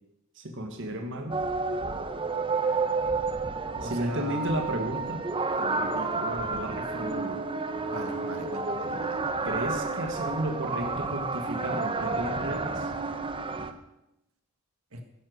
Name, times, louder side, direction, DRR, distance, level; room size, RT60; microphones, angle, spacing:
voice 1, 0.3-1.3 3.8-5.2 5.6-7.4 9.4-12.9, right 1 dB, 60° right, 3 dB, 1.7 m, -33 dB
sound 1, 1.3-13.7, right 3 dB, 25° right, 0.8 m, -30 dB
voice 2, 3.8-4.4 7.9-9.2 14.9-15.0, right 1 dB, 80° right, 5 dB, 1.7 m, -39 dB
13.0 x 10.5 x 6.4 m, 0.89 s
head